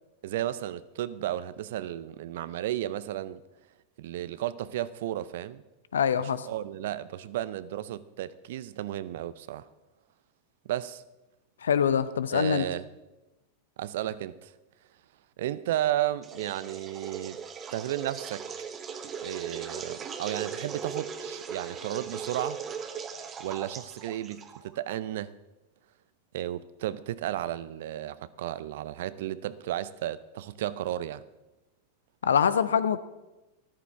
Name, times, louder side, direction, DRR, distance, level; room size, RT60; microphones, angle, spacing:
voice 1, 0.2-3.4 4.0-5.6 6.2-9.6 10.6-11.0 12.3-12.8 13.8-14.5 15.4-17.4 17.7-18.5 19.2-22.6 23.2-25.4 26.3-31.2, right 13 dB, 55° right, 0.5 m, -33 dB
voice 2, 5.9-6.5 11.6-12.6 32.2-33.0, left 7 dB, 65° left, 0.6 m, -24 dB
sound 1, 16.2-24.8, right 6 dB, 25° right, 1.1 m, -39 dB
13.5 x 13.5 x 3.4 m
figure-of-eight pair, 90°, 0 cm